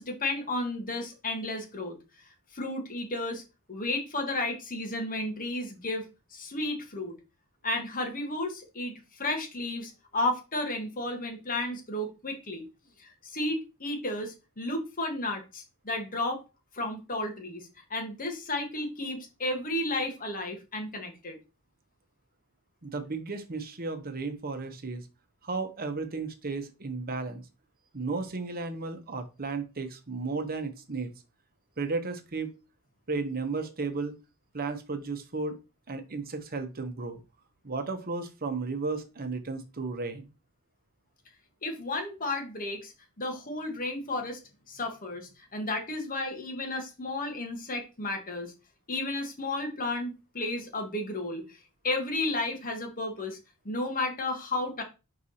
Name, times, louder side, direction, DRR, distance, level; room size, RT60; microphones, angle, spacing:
voice 1, 0.0-2.0 2.5-3.4 3.7-6.0 6.3-7.2 7.6-12.6 13.0-16.4 16.7-21.4 41.6-42.9 43.2-44.4 44.7-48.5 48.9-51.4 51.8-53.4 53.7-54.8, left 2 dB, 40° left, 3 dB, 1.7 m, -33 dB
voice 2, 22.8-25.1 25.4-27.5 27.9-31.1 31.8-32.6 33.1-34.2 34.5-35.6 35.9-37.2 37.6-40.3, right 3 dB, 45° right, 8 dB, 1.0 m, -34 dB
4.8 x 4.7 x 4.2 m, 0.28 s
head